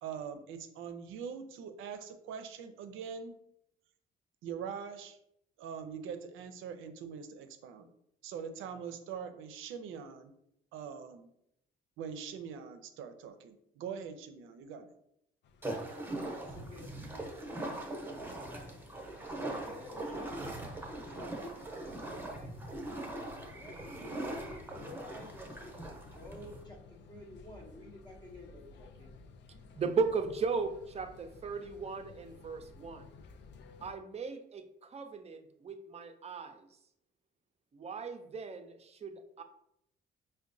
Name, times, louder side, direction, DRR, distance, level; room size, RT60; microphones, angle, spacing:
voice 1, 0.0-3.3 4.4-5.2 5.6-7.9 8.2-10.3 10.7-11.3 12.0-14.9, right 7 dB, 85° right, 8 dB, 0.5 m, -43 dB
sound 1, 15.4-33.9, left 4 dB, 65° left, 0.4 m, -55 dB
sound 2, 15.6-26.6, right 1 dB, 10° right, 0.8 m, -41 dB
voice 2, 16.3-18.0 18.3-18.8 19.2-19.3 19.6-21.6 22.2-22.5 23.5-29.1, left 1 dB, 20° left, -2 dB, 0.6 m, -52 dB
voice 3, 29.8-33.1 33.8-36.7 37.7-39.4, right 4 dB, 30° right, 7 dB, 0.4 m, -36 dB
4.5 x 2.2 x 2.6 m, 0.77 s
cardioid pair, 90°, 20 cm